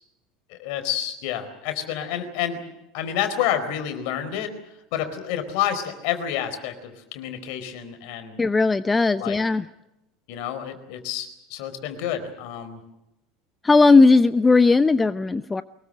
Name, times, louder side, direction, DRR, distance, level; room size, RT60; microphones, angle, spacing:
voice 1, 0.5-2.6 2.9-4.5 4.9-8.4 9.2-9.4 10.3-12.8, left 10 dB, 60° left, 9 dB, 4.5 m, -29 dB
voice 2, 8.4-9.6 13.6-15.6, left 3 dB, 15° left, 14 dB, 0.8 m, -17 dB
24.0 x 21.0 x 7.8 m, 0.88 s
hypercardioid pair, 75°, 0 cm